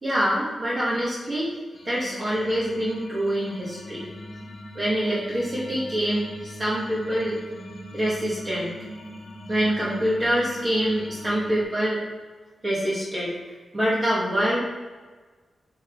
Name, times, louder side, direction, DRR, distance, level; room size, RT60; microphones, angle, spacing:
voice 1, 0.0-1.5 1.9-4.1 4.7-7.4 7.9-8.7 9.5-12.0 12.6-13.3 13.7-14.6, equal, 25° right, -7 dB, 2.4 m, -25 dB
sound 1, 1.7-11.6, left 1 dB, 75° left, 1.6 m, -41 dB
9.6 x 4.0 x 4.9 m, 1.4 s
wide cardioid pair, 130°, 0 cm